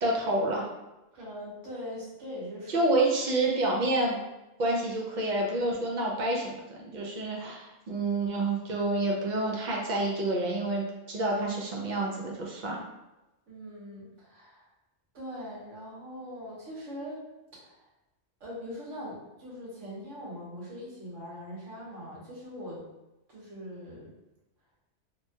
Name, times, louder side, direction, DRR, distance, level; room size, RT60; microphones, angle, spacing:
voice 1, 0.0-0.7 2.7-4.2 4.6-12.8, right 2 dB, 60° right, -2 dB, 0.5 m, -28 dB
voice 2, 1.1-2.9 13.5-14.7 15.1-17.3 17.6-17.8 18.4-22.8 23.3-24.1, equal, 75° right, -6 dB, 1.3 m, -41 dB
2.9 x 2.2 x 2.7 m, 0.99 s
omnidirectional pair, 1.2 m